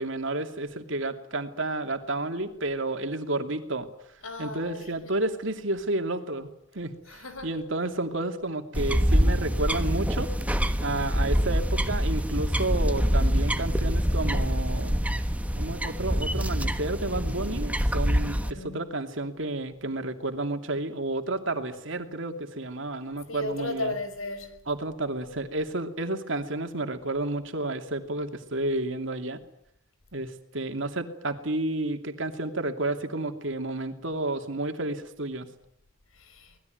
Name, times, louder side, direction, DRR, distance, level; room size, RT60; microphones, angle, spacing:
voice 1, 0.0-3.9 4.4-6.5 6.7-10.3 10.8-15.0 15.6-23.9 24.7-29.4 30.1-35.5, right 2 dB, 65° right, 2.7 m, -31 dB
voice 2, 4.2-5.3 7.0-7.6 18.2-18.8 23.2-24.6 36.1-36.6, left 2 dB, 90° left, 5.4 m, -36 dB
sound 1, 8.7-18.5, equal, 5° right, 1.3 m, -25 dB
25.0 x 20.0 x 9.3 m
head